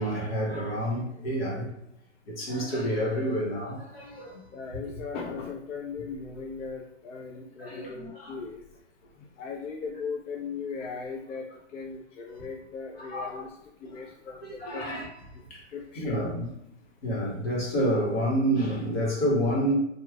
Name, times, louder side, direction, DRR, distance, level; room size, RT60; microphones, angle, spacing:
voice 1, 0.0-1.7 2.3-4.5 7.3-8.4 12.4-12.5 13.0-13.4 13.8-13.9 14.4-15.1 15.5-15.6 16.0-16.5 17.0-19.7, equal, 50° left, 1.4 m, -29 dB
voice 2, 4.5-8.6 9.0-14.9 15.7-16.2, left 5 dB, 85° left, 0.7 m, -38 dB
3.5 x 2.6 x 2.3 m
hypercardioid pair, 165°, 37 cm